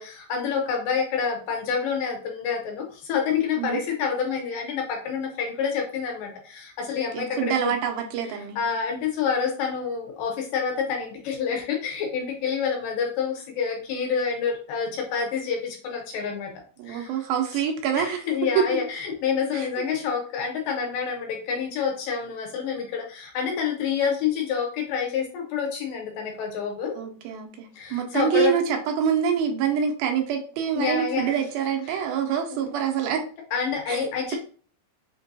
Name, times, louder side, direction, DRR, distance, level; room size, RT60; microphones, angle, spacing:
voice 1, 0.0-7.7 8.6-16.5 16.9-17.3 18.0-27.0 27.8-28.6 30.7-31.3 31.9-32.0 32.5-32.7 33.5-34.4, left 6 dB, 75° left, 1 dB, 2.5 m, -28 dB
voice 2, 7.1-8.6 16.8-18.2 18.6-18.8 19.5-19.9 27.0-33.2 33.9-34.4, right 8 dB, 85° right, 4 dB, 2.5 m, -26 dB
5.7 x 2.2 x 2.6 m, 0.42 s
omnidirectional pair, 4.2 m